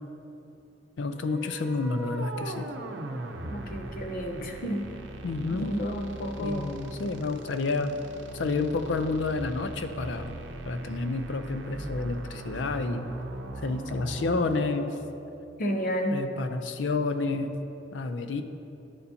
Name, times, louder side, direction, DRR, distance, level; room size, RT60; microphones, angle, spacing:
voice 1, 1.0-2.7 5.2-5.8 6.4-8.0 8.3-10.4 10.7-13.1 13.6-14.9 16.1-17.5 17.9-18.4, left 3 dB, 80° left, 9 dB, 0.5 m, -29 dB
sound 1, 1.1-15.0, right 2 dB, 90° right, 0.6 m, -40 dB
voice 2, 3.5-4.8 5.5-6.8 15.6-16.2, equal, 50° left, 3 dB, 0.7 m, -31 dB
10.5 x 6.9 x 2.8 m, 2.8 s
head